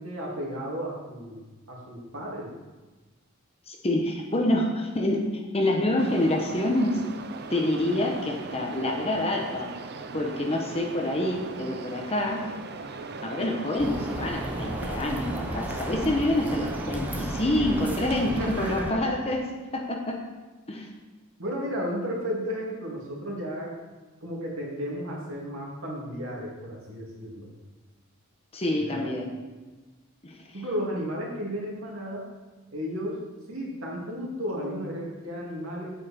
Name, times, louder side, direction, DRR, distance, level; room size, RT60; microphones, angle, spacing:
voice 1, 0.0-2.5 18.4-19.0 21.4-23.7 24.2-27.5 28.8-29.1 30.5-32.3 32.7-33.2 33.5-35.9, equal, 70° right, -3 dB, 2.7 m, -33 dB
voice 2, 3.7-7.0 7.5-9.7 10.1-12.5 13.2-19.5 19.7-20.2 20.7-20.9 28.5-29.4 30.2-30.5, left 1 dB, 30° left, 1 dB, 1.0 m, -27 dB
sound 1, 6.0-18.8, right 4 dB, 50° right, 0.7 m, -39 dB
sound 2, 13.8-18.9, equal, 10° right, 0.8 m, -33 dB
9.0 x 8.8 x 4.4 m, 1.2 s
head